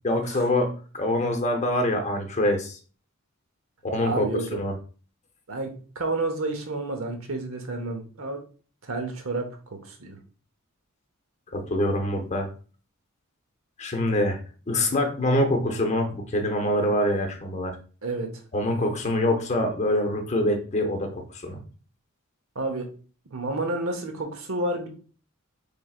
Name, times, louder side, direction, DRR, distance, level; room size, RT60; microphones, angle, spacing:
voice 1, 0.0-2.8 3.8-4.3 4.5-4.7 11.5-12.5 13.8-14.4 14.7-17.8 18.5-21.6, left 1 dB, 35° left, 4 dB, 0.7 m, -25 dB
voice 2, 4.0-4.6 5.5-8.4 8.8-10.2 18.0-18.3 22.5-22.9 23.3-24.9, right 2 dB, 75° right, 5 dB, 0.9 m, -30 dB
4.5 x 3.3 x 2.4 m, 0.38 s
head